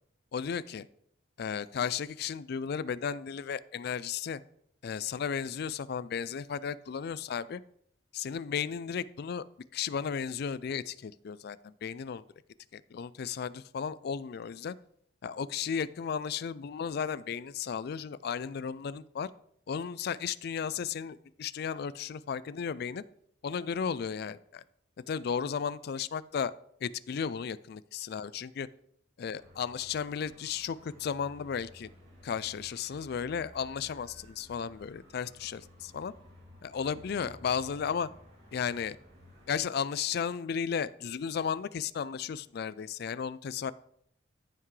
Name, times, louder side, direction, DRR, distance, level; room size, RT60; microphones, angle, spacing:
voice 1, 0.3-0.8 1.4-4.4 4.8-7.6 8.1-9.4 9.7-12.2 12.7-14.8 15.2-19.3 19.7-23.0 23.4-24.6 25.1-26.5 26.8-28.7 29.2-31.9 32.2-36.1 36.6-38.1 38.5-39.0 39.5-43.7, left 7 dB, 55° left, 17 dB, 0.3 m, -34 dB
sound 1, 29.4-39.6, left 1 dB, 55° right, 2.9 m, -55 dB
14.0 x 5.7 x 3.2 m, 0.71 s
head